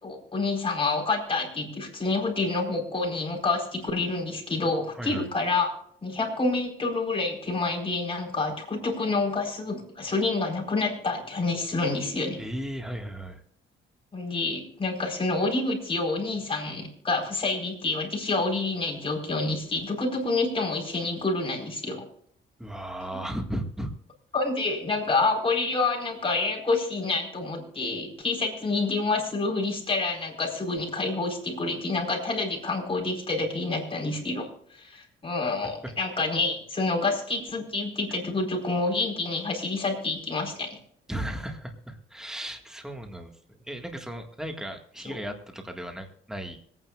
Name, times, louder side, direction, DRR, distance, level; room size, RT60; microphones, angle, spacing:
voice 1, 0.0-5.7 6.0-12.4 14.1-22.0 24.3-34.5 34.7-40.8 45.0-45.2, left 3 dB, 25° left, -1 dB, 4.3 m, -28 dB
voice 2, 4.9-5.3 12.4-13.4 22.6-23.9 35.8-35.9 41.1-43.3 43.7-46.6, right 1 dB, 5° right, 4 dB, 1.7 m, -35 dB
25.5 x 9.4 x 2.4 m, 0.66 s
cardioid pair, 90°, 20 cm